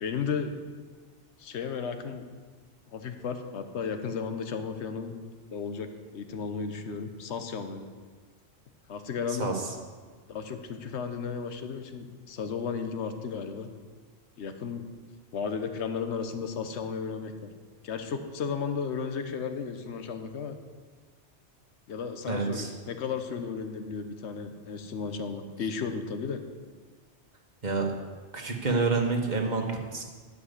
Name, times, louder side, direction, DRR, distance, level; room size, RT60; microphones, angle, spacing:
voice 1, 0.0-0.6 1.4-2.3 2.9-5.1 5.5-7.9 8.9-9.5 10.3-13.7 14.4-14.8 15.3-17.5 17.8-20.6 21.9-26.4, left 6 dB, 75° left, 8 dB, 1.1 m, -34 dB
voice 2, 9.3-9.7 22.3-22.7 27.6-27.9 28.3-30.0, right 4 dB, 40° right, 1 dB, 1.5 m, -28 dB
11.5 x 5.3 x 8.0 m, 1.5 s
omnidirectional pair, 1.2 m